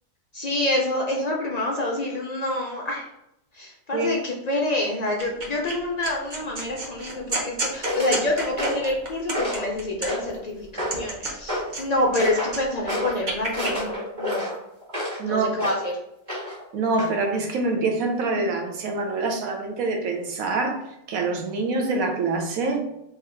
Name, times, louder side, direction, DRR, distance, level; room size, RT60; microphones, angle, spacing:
voice 1, 0.3-3.1 3.5-14.5 15.2-15.9, left 1 dB, 60° left, -1 dB, 0.4 m, -27 dB
sound 1, 5.2-5.7 6.0-10.4 10.8-12.2 12.5-13.7, right 2 dB, 45° right, 0.7 m, -31 dB
sound 2, 7.8-8.2 8.6-8.9 9.3-9.7 10.1-10.4 10.8-11.1 11.5-11.7 12.2-12.6 12.9-13.2 13.5-15.2 15.6-15.9 16.3-16.6 17.0-17.2, equal, 20° right, 1.5 m, -29 dB
voice 2, 16.7-20.8 21.1-22.8, right 3 dB, 80° right, 3 dB, 1.1 m, -25 dB
3.1 x 2.8 x 3.7 m, 0.81 s
omnidirectional pair, 1.5 m